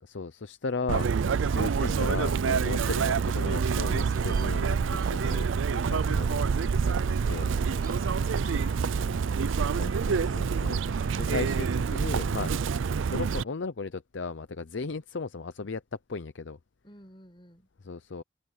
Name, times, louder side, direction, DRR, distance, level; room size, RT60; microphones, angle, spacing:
voice 1, 0.0-1.1 1.5-6.5 6.8-6.9 7.3-7.5 9.7-12.5 13.0-16.6 17.8-18.2, left 4 dB, 70° left, 0.7 m, -36 dB
Chirp tweet, 0.9-13.4, right 5 dB, 75° right, 0.4 m, -27 dB
sound 1, 4.1-5.9 6.7-6.8 7.1-9.8 10.7-11.3, right 6 dB, 45° right, 2.1 m, -53 dB
voice 2, 7.9-8.9 9.2-10.1 16.8-17.7, left 2 dB, 25° left, 7.7 m, -51 dB
open air
head